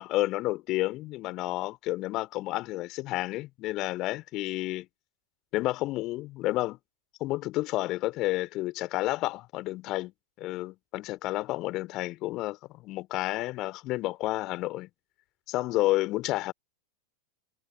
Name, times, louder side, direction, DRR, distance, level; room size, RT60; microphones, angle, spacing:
voice 1, 0.0-4.9 5.5-6.8 7.2-10.1 10.4-14.9 15.5-16.5, left 18 dB, 40° left, 3.2 m, -30 dB
figure-of-eight pair, 90°, 0 cm